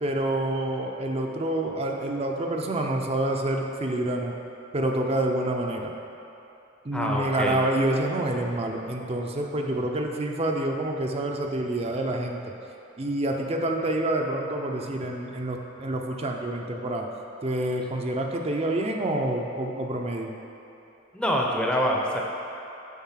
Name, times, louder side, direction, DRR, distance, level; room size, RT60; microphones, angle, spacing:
voice 1, 0.0-4.4 4.7-5.9 6.8-12.4 13.0-17.1 17.4-20.3, right 1 dB, 30° right, 1 dB, 0.6 m, -27 dB
voice 2, 6.9-7.6 21.1-22.2, equal, 5° left, -2 dB, 0.7 m, -25 dB
7.3 x 5.4 x 5.7 m, 2.8 s
head